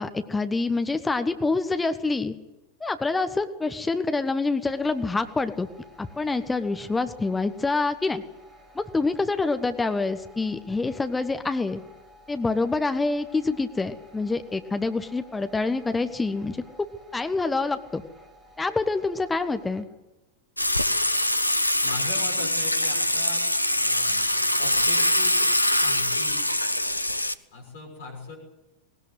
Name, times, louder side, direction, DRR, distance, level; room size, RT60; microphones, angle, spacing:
voice 1, 0.0-2.3 2.8-5.7 6.0-8.2 8.7-11.8 12.3-16.6 17.1-18.0 18.6-19.8, left 3 dB, 10° left, 9 dB, 1.3 m, -26 dB
sound 1, 4.7-19.8, left 1 dB, 20° right, 5.6 m, -53 dB
Water / Water tap faucet / Sink (filling or washing), 20.6-27.3, left 1 dB, 85° left, 0.8 m, -23 dB
voice 2, 21.8-24.3 24.6-25.5 25.8-26.4 27.5-28.4, left 2 dB, 55° left, 0 dB, 6.5 m, -40 dB
19.5 x 19.5 x 8.1 m, 1.0 s
figure-of-eight pair, 90°, 0 cm